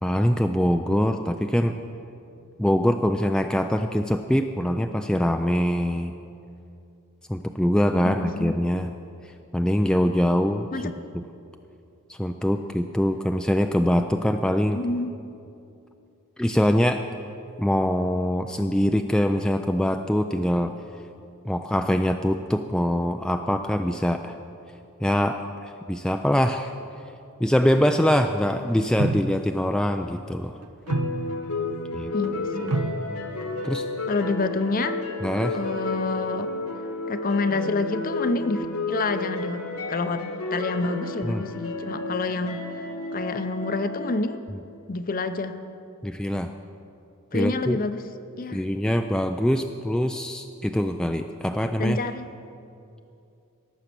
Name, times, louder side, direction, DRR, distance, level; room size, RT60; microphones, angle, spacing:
voice 1, 0.0-1.8 2.6-6.1 7.3-8.9 9.5-10.7 12.1-14.8 16.4-17.0 17.6-20.7 21.5-24.3 25.0-26.7 27.4-30.5 31.9-32.1 33.6-33.9 35.2-35.6 41.2-41.4 46.0-46.5 47.3-47.8 48.5-52.0, equal, 5° left, 5 dB, 0.3 m, -23 dB
voice 2, 8.0-8.6 10.7-10.9 14.7-15.1 32.1-32.8 34.1-35.0 35.5-36.5 37.1-39.6 39.9-40.2 40.5-44.4 44.9-45.6 47.3-48.0 48.4-48.6 51.8-52.3, left 3 dB, 40° left, 10 dB, 0.6 m, -28 dB
sound 1, 29.0-29.7 30.6-31.6 32.2-32.3 32.7-33.7, right 2 dB, 85° right, 0.7 m, -29 dB
sound 2, 30.9-44.1, left 2 dB, 75° left, 1.6 m, -31 dB
17.5 x 7.3 x 6.8 m, 2.6 s
head